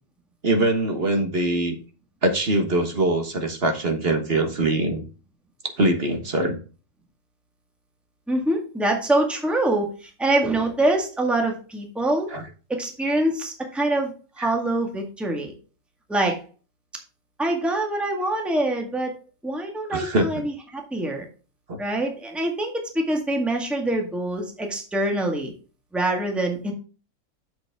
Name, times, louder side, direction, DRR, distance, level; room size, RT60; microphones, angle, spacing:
voice 1, 0.4-1.8 2.2-5.0 5.8-6.6 12.3-12.4 14.4-14.5 19.9-20.4 21.7-21.8, right 2 dB, 40° right, 5 dB, 1.5 m, -23 dB
voice 2, 8.3-12.3 12.7-15.5 16.1-16.4 17.4-19.1 19.4-21.3 21.8-25.5 25.9-26.7, right 1 dB, ahead, 2 dB, 1.8 m, -25 dB
7.7 x 7.6 x 3.6 m, 0.35 s
omnidirectional pair, 1.6 m